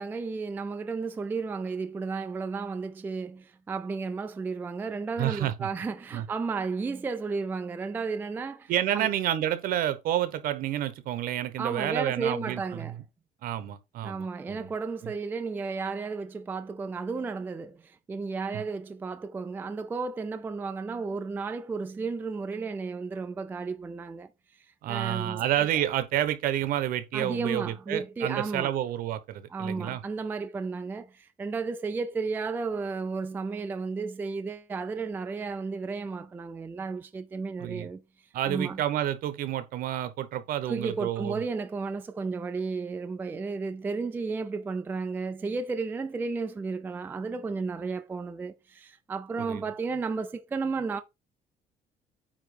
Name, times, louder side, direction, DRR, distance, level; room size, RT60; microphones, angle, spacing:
voice 1, 0.0-9.1 11.6-12.9 14.0-24.3 24.9-25.5 27.1-28.7 29.5-38.0 38.5-38.8 40.7-51.0, right 4 dB, 10° right, 0.3 m, -33 dB
voice 2, 5.2-5.7 6.1-6.3 8.7-12.9 13.4-14.7 15.0-15.1 18.5-18.6 24.8-30.0 37.6-37.9 38.3-41.4 49.4-49.6, right 12 dB, 65° right, 1.0 m, -29 dB
9.0 x 3.0 x 4.9 m
cardioid pair, 175°, 16 cm